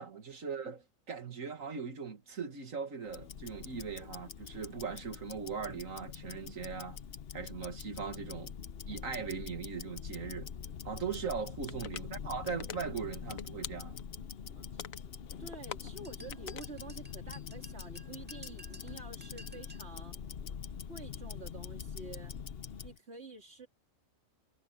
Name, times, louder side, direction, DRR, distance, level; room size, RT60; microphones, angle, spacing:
voice 1, 0.0-7.0 7.3-8.5 8.9-10.5 10.8-14.0, right 6 dB, 80° right, 2.5 m, -39 dB
Tick-tock, 3.1-23.0, left 7 dB, 55° left, 1.0 m, -44 dB
voice 2, 11.6-12.0 14.5-14.8 15.4-20.2 20.9-22.4 22.8-23.7, right 3 dB, 55° right, 3.5 m, -49 dB
sound 1, 11.7-12.0 12.4-12.8 13.2-14.2 14.6-15.0 15.5-16.7, left 10 dB, 90° left, 1.2 m, -43 dB
sound 2, 16.0-19.9, right 1 dB, 10° right, 2.0 m, -54 dB
omnidirectional pair, 1.4 m